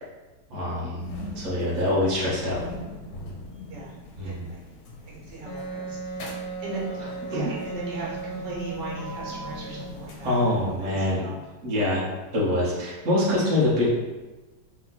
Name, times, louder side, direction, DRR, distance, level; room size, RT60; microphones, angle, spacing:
voice 1, 0.5-1.1 1.3-2.6 4.2-4.5 7.0-7.5 10.2-11.3 11.6-12.0 12.3-13.9, left 1 dB, 50° right, -6 dB, 1.4 m, -25 dB
sound 1, 0.9-11.1, left 1 dB, 85° left, 1.4 m, -41 dB
voice 2, 4.2-4.7 5.0-6.0 6.6-6.9 7.3-11.4, right 3 dB, 80° right, -5 dB, 1.7 m, -38 dB
Wind instrument woodwind instrument, 5.5-10.1, right 3 dB, 70° left, 0.8 m, -36 dB
3.6 x 2.9 x 4.0 m, 1.2 s
omnidirectional pair, 1.9 m